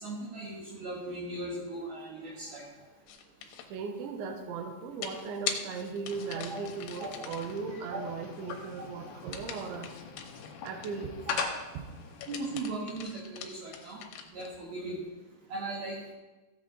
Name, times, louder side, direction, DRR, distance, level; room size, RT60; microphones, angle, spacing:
voice 1, 0.0-2.6 6.5-6.6 7.0-7.1 7.7-8.0 11.3-11.4 12.3-14.0 14.3-15.0 15.5-16.1, right 2 dB, 65° right, -4 dB, 3.4 m, -38 dB
sound 1, 3.1-3.7 5.0-7.6 9.3-11.1 12.0-14.6, left 8 dB, 90° left, 3.4 m, -42 dB
voice 2, 3.7-9.9 10.6-11.1 11.7-11.8, right 5 dB, 90° right, 4 dB, 3.5 m, -37 dB
sound 2, 6.0-12.6, left 5 dB, 70° left, 2.1 m, -41 dB
15.5 x 8.0 x 4.1 m, 1.2 s
omnidirectional pair, 5.2 m